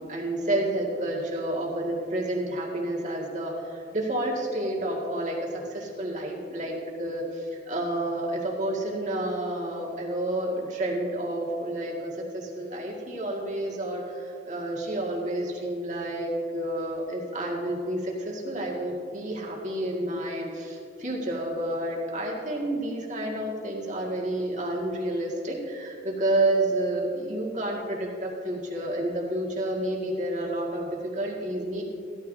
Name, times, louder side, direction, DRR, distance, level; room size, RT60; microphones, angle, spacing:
voice 1, 0.0-31.8, right 1 dB, 40° right, -3 dB, 2.1 m, -30 dB
16.5 x 13.0 x 2.8 m, 2.5 s
head